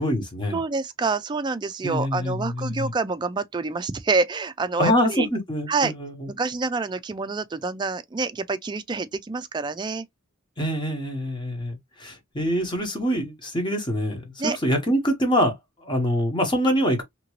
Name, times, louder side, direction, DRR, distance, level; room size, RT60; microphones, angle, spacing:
voice 1, 0.0-0.6 1.8-2.9 4.8-6.3 10.6-15.5 15.8-17.0, equal, 20° left, 1.0 m, -25 dB
voice 2, 0.5-5.3 5.7-5.9 6.3-10.1 14.4-14.6, right 4 dB, 20° right, 0.3 m, -27 dB
2.9 x 2.5 x 3.0 m
head